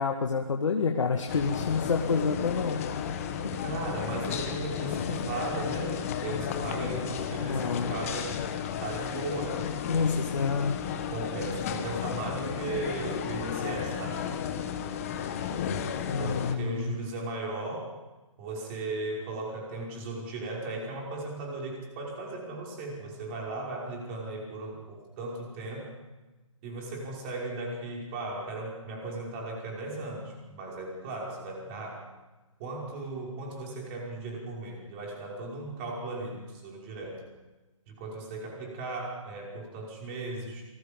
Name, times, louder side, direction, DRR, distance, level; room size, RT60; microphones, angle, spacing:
voice 1, 0.0-2.8 3.4-3.5 7.4-8.0 9.4-9.5 9.9-10.8 16.0-17.0, left 5 dB, 65° left, 4 dB, 2.1 m, -28 dB
sound 1, 1.3-16.6, left 8 dB, 25° left, 1.6 m, -33 dB
voice 2, 3.6-8.4 8.8-9.7 11.1-14.2 16.2-17.9 18.4-25.9 26.6-32.0 32.6-37.2 37.9-40.6, right 2 dB, 20° right, -2 dB, 5.5 m, -36 dB
27.5 x 20.5 x 5.3 m, 1.2 s
hypercardioid pair, 160°, 17 cm